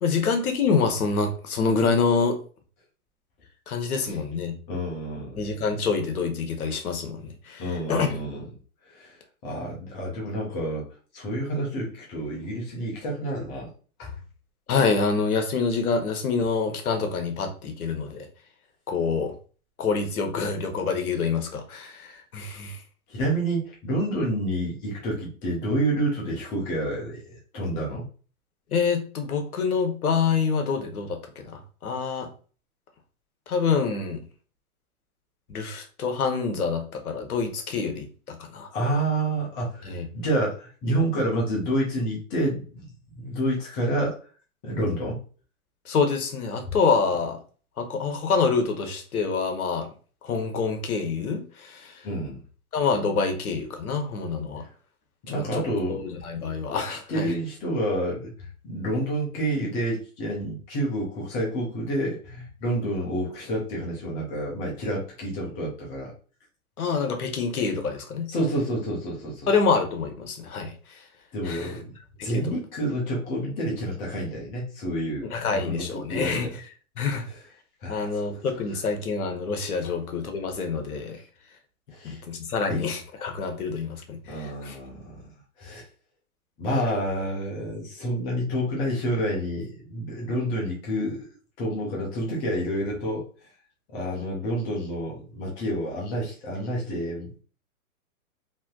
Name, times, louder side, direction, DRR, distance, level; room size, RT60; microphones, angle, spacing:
voice 1, 0.0-2.4 3.7-4.5 5.3-7.6 7.9-8.1 14.7-18.3 18.9-19.3 19.8-22.8 28.7-32.3 33.5-34.2 35.5-38.7 39.8-40.1 45.9-47.4 47.8-49.9 50.2-51.9 52.7-54.6 55.3-55.6 55.9-57.3 66.8-68.3 69.5-70.7 71.4-71.7 72.2-72.4 75.3-76.5 77.0-77.2 77.9-81.2 82.0-84.8, left 5 dB, 80° left, 0.9 m, -26 dB
voice 2, 4.7-5.4 7.6-8.5 8.9-9.2 9.4-10.9 11.1-13.7 14.0-14.1 23.1-28.0 38.7-42.9 43.1-44.2 44.6-45.2 52.0-52.4 55.3-56.0 56.7-66.1 68.3-69.5 71.3-71.9 72.2-76.5 77.2-77.4 77.8-78.2 79.8-79.9 81.9-82.2 82.7-82.8 84.2-85.3 85.6-85.9 86.6-91.3 91.6-93.3 93.9-97.4, right 1 dB, 10° left, 0.4 m, -29 dB
3.3 x 2.6 x 2.3 m
hypercardioid pair, 125°, 43 cm